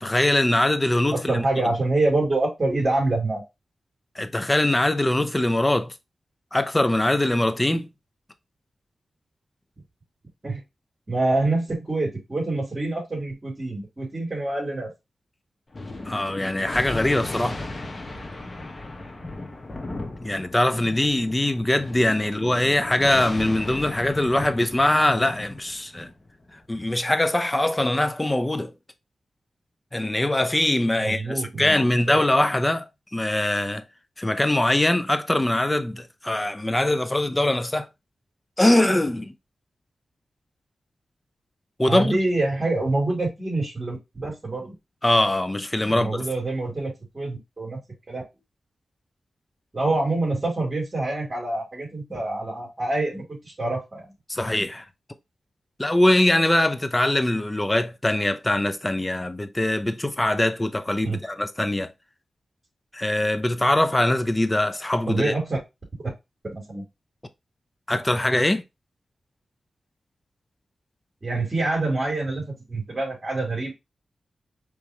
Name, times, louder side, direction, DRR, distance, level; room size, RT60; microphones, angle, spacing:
voice 1, 0.0-1.4 4.2-5.9 6.5-7.9 16.1-17.6 20.2-26.1 26.7-28.7 29.9-32.9 33.1-33.8 34.2-37.9 38.6-39.3 41.8-42.2 45.0-46.1 54.3-54.8 55.8-61.9 62.9-65.3 67.9-68.6, left 1 dB, 20° left, 0.7 m, -22 dB
voice 2, 1.1-3.4 10.4-10.6 11.1-14.9 31.0-32.2 41.9-44.7 45.8-47.8 48.1-48.2 49.7-54.1 61.0-61.2 65.1-65.6 66.5-66.8 71.2-73.7, right 2 dB, 40° right, 3.0 m, -26 dB
Thunder, 15.7-26.6, left 2 dB, 35° left, 1.3 m, -36 dB
5.1 x 3.4 x 3.0 m
cardioid pair, 55°, 0 cm